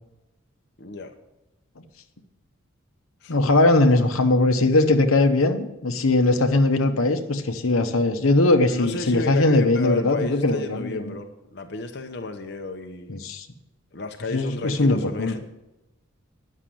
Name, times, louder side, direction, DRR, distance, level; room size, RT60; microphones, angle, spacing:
voice 1, 0.8-1.1 3.2-3.3 8.5-13.2 13.9-15.4, left 3 dB, 50° left, 4 dB, 0.8 m, -33 dB
voice 2, 3.3-11.1 13.1-13.5 14.3-15.3, left 2 dB, 80° left, 7 dB, 1.0 m, -20 dB
10.0 x 6.6 x 7.6 m, 0.95 s
head